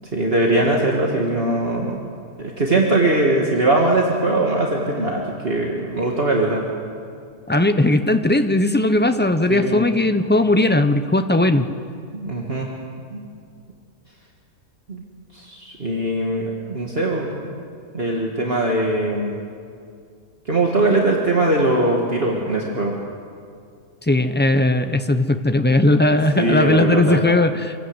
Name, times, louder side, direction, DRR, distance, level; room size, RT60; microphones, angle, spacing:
voice 1, 0.1-2.0 2.4-6.7 9.5-9.8 12.1-12.7 13.1-13.3 14.9-15.0 15.3-17.5 17.9-19.4 20.5-22.9 26.1-27.2, right 2 dB, 45° right, -1 dB, 2.2 m, -21 dB
voice 2, 7.5-11.7 24.0-27.8, left 1 dB, 10° left, 8 dB, 0.7 m, -18 dB
26.5 x 17.5 x 8.1 m, 2.3 s
omnidirectional pair, 1.4 m